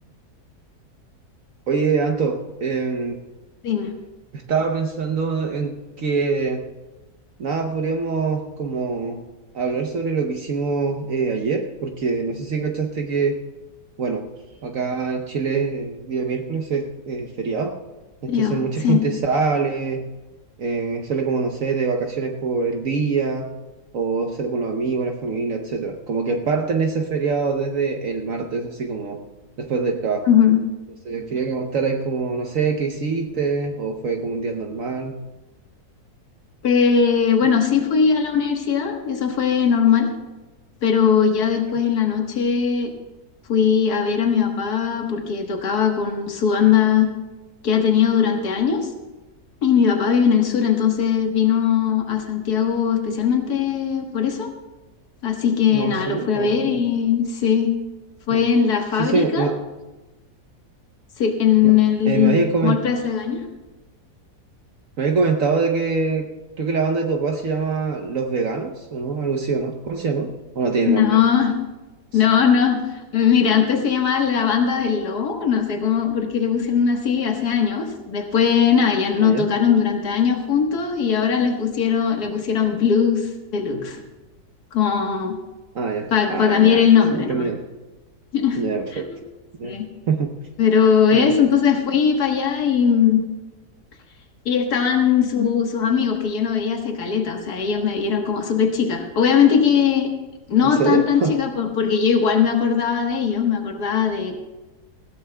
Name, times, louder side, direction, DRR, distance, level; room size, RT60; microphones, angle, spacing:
voice 1, 1.7-3.2 4.3-6.6 7.4-9.2 9.5-13.4 14.0-14.3 14.6-17.8 18.2-20.1 20.6-23.5 23.9-29.2 29.6-30.3 31.0-35.2 55.7-56.8 58.3-58.4 59.0-59.6 61.6-61.8 62.1-62.8 65.0-66.3 66.6-71.2 72.1-72.2 79.2-79.4 85.7-86.8 87.1-87.6 88.5-89.1 89.6-89.8 90.1-90.4 91.1-91.3 100.6-101.4, right 4 dB, 60° right, 3 dB, 1.2 m, -24 dB
voice 2, 18.3-19.1 30.3-30.6 36.6-40.1 40.8-42.9 43.5-47.1 47.6-48.9 49.6-54.5 55.2-57.7 58.3-59.5 61.2-63.4 70.9-71.5 72.1-84.0 84.7-85.4 86.1-87.5 88.3-88.6 88.9-89.2 89.6-89.9 90.6-93.2 94.5-100.1 100.5-104.4, left 7 dB, 80° left, 3 dB, 1.9 m, -19 dB
19.5 x 16.0 x 2.2 m, 1.2 s
omnidirectional pair, 1.7 m